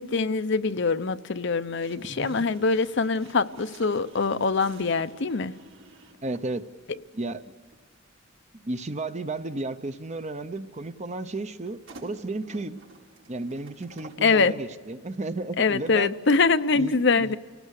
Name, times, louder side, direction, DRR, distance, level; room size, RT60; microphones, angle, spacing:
voice 1, 0.0-5.6 14.2-14.5 15.6-17.4, left 4 dB, 60° left, 0.7 m, -24 dB
sound 1, 1.8-6.5 7.6-7.8 11.6-14.3, right 3 dB, 80° right, 4.7 m, -51 dB
voice 2, 2.1-2.5 6.2-6.7 7.1-7.4 8.5-12.8 13.3-16.1 16.7-17.4, right 2 dB, 35° right, 0.8 m, -33 dB
30.0 x 18.5 x 6.6 m
head